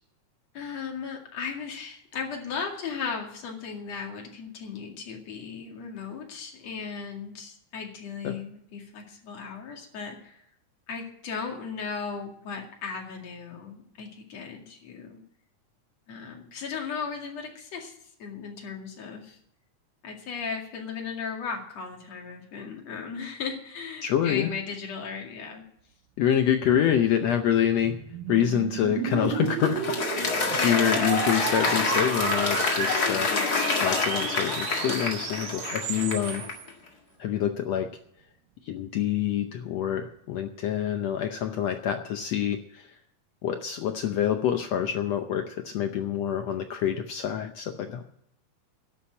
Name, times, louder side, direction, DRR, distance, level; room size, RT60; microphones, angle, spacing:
voice 1, 0.5-10.5 10.9-15.2 16.1-17.9 18.2-19.4 20.0-25.6 30.5-31.2 33.1-33.7, left 5 dB, 55° left, 1 dB, 3.3 m, -36 dB
voice 2, 24.0-24.5 26.2-28.0 28.3-30.0 30.4-33.3 33.8-36.4 37.2-37.9 38.6-42.9 43.4-48.0, left 9 dB, 75° left, 6 dB, 1.6 m, -26 dB
sound 1, 26.9-36.6, right 10 dB, 75° right, 2.3 m, -33 dB
Applause, 29.1-36.7, left 4 dB, 35° left, 1.9 m, -28 dB
11.5 x 7.3 x 9.5 m, 0.72 s
omnidirectional pair, 3.7 m